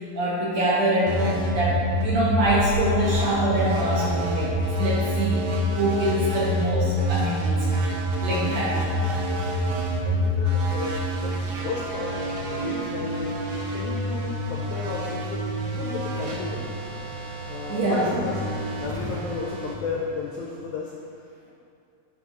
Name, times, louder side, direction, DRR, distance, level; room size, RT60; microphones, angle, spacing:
voice 1, 0.1-5.4 5.8-7.7 8.2-8.8 17.7-18.1, right 1 dB, 65° right, -6 dB, 1.8 m, -24 dB
sound 1, 1.1-20.6, equal, 80° right, 1.3 m, -27 dB
voice 2, 10.0-16.9 17.5-18.5 18.8-20.9, left 4 dB, 85° left, -2 dB, 1.7 m, -34 dB
9.8 x 6.2 x 3.0 m, 2.4 s
omnidirectional pair, 4.0 m